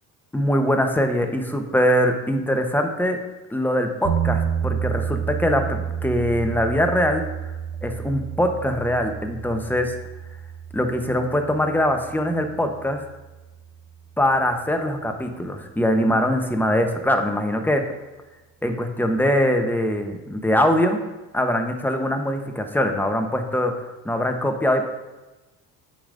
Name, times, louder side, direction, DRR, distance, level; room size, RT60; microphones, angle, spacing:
voice 1, 0.3-3.2 3.5-7.2 7.8-9.9 10.7-13.0 14.2-17.8 18.6-21.0 21.3-24.8, equal, 5° left, 5 dB, 0.9 m, -22 dB
sound 1, 4.0-14.1, right 8 dB, 45° right, 1.9 m, -30 dB
8.6 x 5.1 x 2.6 m, 1.1 s
supercardioid pair, 70°, 38 cm